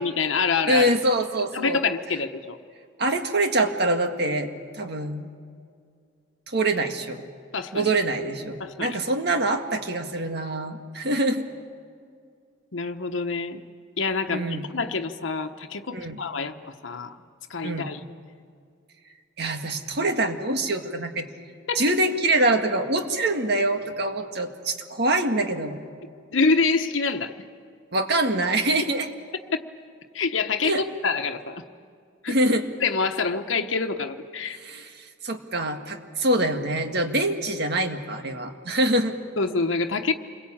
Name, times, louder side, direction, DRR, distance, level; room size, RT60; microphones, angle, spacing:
voice 1, 0.0-0.9 1.5-2.6 7.5-7.9 8.6-9.0 12.7-13.6 14.0-16.5 16.8-17.2 17.5-18.0 21.7-21.8 26.3-27.4 29.5-29.6 30.1-31.6 32.2-32.3 32.8-34.6 39.4-40.1, left 4 dB, 90° left, 5 dB, 1.1 m, -26 dB
voice 2, 0.7-1.8 3.0-5.3 6.5-7.2 7.7-11.5 14.3-14.6 15.9-16.2 17.6-17.9 19.4-21.3 21.8-25.8 27.9-29.1 30.6-30.8 32.3-32.7 34.5-39.2, right 1 dB, 55° right, 5 dB, 1.9 m, -25 dB
28.5 x 22.0 x 8.7 m, 2.2 s
head